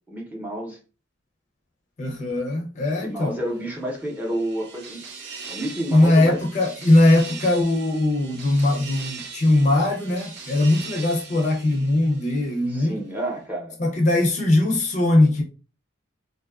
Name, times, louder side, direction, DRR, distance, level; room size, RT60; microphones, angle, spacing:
voice 1, 0.1-0.8 3.0-6.4 12.7-13.8, right 1 dB, 10° right, 0.6 m, -30 dB
voice 2, 2.0-3.4 5.9-13.0 13.8-15.4, left 1 dB, 35° left, 0.5 m, -20 dB
sound 1, 3.6-12.7, right 5 dB, 55° right, 0.4 m, -40 dB
2.5 x 2.2 x 2.3 m
head